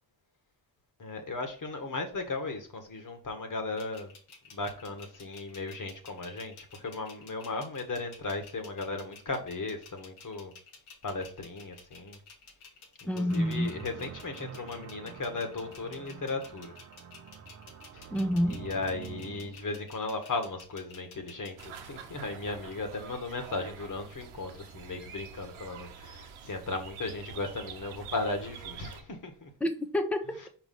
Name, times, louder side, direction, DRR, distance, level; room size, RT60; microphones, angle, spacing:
voice 1, 1.0-4.1 4.5-10.5 11.0-12.2 13.1-16.8 17.9-18.0 18.5-29.5, left 3 dB, 40° left, 1.8 m, -36 dB
sound 1, 3.8-21.8, left 5 dB, 80° left, 1.7 m, -52 dB
voice 2, 13.1-13.7 18.1-18.7 29.6-30.5, equal, 5° left, 0.9 m, -28 dB
sound 2, 13.3-19.6, right 7 dB, 35° right, 0.7 m, -46 dB
sound 3, 21.6-29.0, right 7 dB, 85° right, 0.9 m, -46 dB
4.9 x 4.8 x 3.9 m
supercardioid pair, 65°, 48 cm